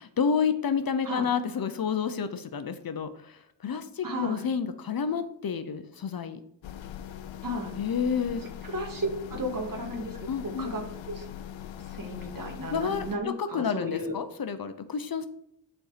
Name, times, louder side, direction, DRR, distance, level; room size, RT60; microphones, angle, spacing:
voice 1, 0.0-3.3 3.6-6.4 7.8-8.4 10.3-10.7 12.7-15.3, left 6 dB, 50° left, 10 dB, 0.7 m, -29 dB
voice 2, 4.0-4.5 7.4-7.7 8.6-11.3 11.9-14.1, equal, 50° right, 1 dB, 2.1 m, -34 dB
sound 1, 6.6-13.2, left 10 dB, 90° left, 0.6 m, -41 dB
10.5 x 4.4 x 5.0 m, 0.74 s
wide cardioid pair, 130°, 44 cm